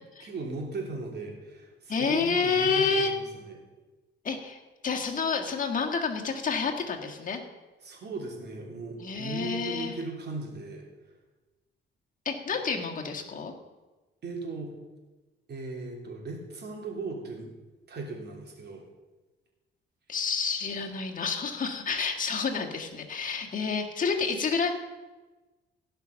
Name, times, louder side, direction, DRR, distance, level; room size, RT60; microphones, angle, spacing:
voice 1, 0.2-3.6 7.8-10.8 14.2-14.7 15.5-17.5 17.9-18.8, right 3 dB, 55° right, 1 dB, 3.2 m, -37 dB
voice 2, 1.9-3.1 4.2-7.4 9.0-10.0 12.3-13.5 20.1-24.7, left 5 dB, 40° left, 2 dB, 1.9 m, -29 dB
17.0 x 5.7 x 5.8 m, 1.2 s
cardioid pair, 90°, 20 cm